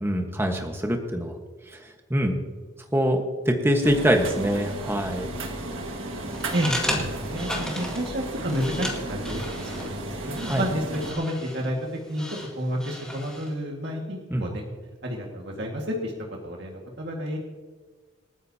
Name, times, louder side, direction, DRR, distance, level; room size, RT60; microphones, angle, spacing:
voice 1, 0.0-1.3 1.7-1.8 2.1-2.3 2.9-5.3 6.9-7.0 10.5-10.6 14.3-14.5, equal, 10° right, 3 dB, 1.3 m, -24 dB
sound 1, 3.8-11.1, right 2 dB, 75° right, 1.8 m, -34 dB
sound 2, 6.2-13.6, left 1 dB, 5° left, 2.0 m, -35 dB
voice 2, 6.5-14.6 15.0-16.1 16.4-17.4, equal, 55° right, -1 dB, 1.9 m, -30 dB
27.5 x 9.3 x 2.8 m, 1.4 s
head